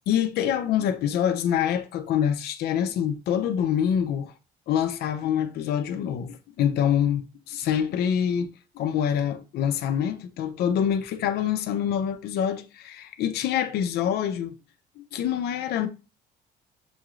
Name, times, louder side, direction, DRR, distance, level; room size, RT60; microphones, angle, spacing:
voice 1, 0.1-4.3 4.7-14.6 15.0-15.9, left 9 dB, 70° left, 0.6 m, -26 dB
7.0 x 2.4 x 3.1 m
cardioid pair, 110°, 17 cm